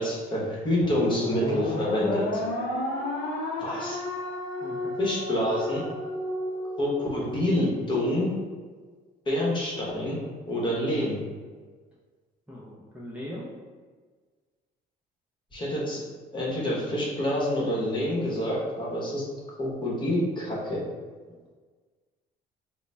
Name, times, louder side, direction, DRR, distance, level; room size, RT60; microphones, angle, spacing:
voice 1, 0.0-2.4 3.6-4.0 5.0-5.8 6.8-8.3 9.3-10.2 10.5-11.2 15.5-16.0 16.3-19.2 19.6-20.8, left 1 dB, 30° left, -4 dB, 1.0 m, -27 dB
sound 1, 0.8-7.3, left 1 dB, 90° left, 0.7 m, -31 dB
voice 2, 4.6-4.9 12.5-13.5, left 1 dB, 5° right, -7 dB, 0.6 m, -40 dB
3.9 x 2.1 x 3.2 m, 1.5 s
cardioid pair, 110°, 17 cm